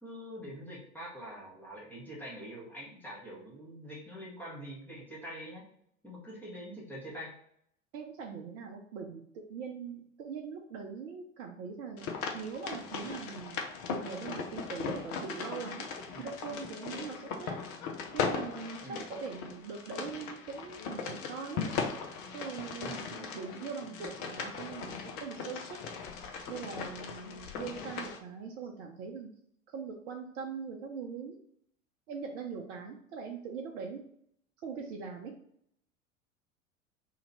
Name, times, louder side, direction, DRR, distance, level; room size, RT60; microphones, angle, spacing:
voice 1, 0.0-5.6 6.0-7.3 16.1-16.3 18.8-19.0 22.8-23.1 26.2-26.3, equal, 5° left, -6 dB, 1.3 m, -44 dB
voice 2, 7.9-13.6 13.9-15.9 16.2-17.6 18.1-21.8 22.3-25.8 26.5-29.3 29.7-31.4 32.1-34.0 34.6-35.3, right 5 dB, 55° right, 1 dB, 0.6 m, -41 dB
sound 1, 12.0-28.2, left 5 dB, 40° left, 0.6 m, -38 dB
2.9 x 2.8 x 3.9 m, 0.70 s
figure-of-eight pair, 85°, 42 cm